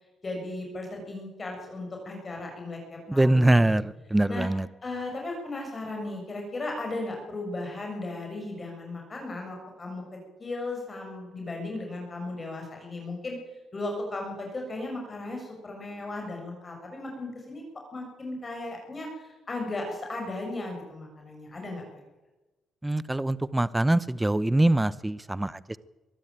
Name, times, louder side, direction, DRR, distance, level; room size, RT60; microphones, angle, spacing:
voice 1, 0.2-3.8 4.3-4.5 4.8-10.0 10.4-13.4 13.7-17.6 17.9-19.1 19.5-22.0, left 2 dB, 30° left, 1 dB, 7.4 m, -36 dB
voice 2, 3.1-4.7 22.8-25.8, right 1 dB, 10° right, 17 dB, 0.9 m, -23 dB
23.0 x 13.0 x 9.0 m, 1.1 s
cardioid pair, 90°, 0 cm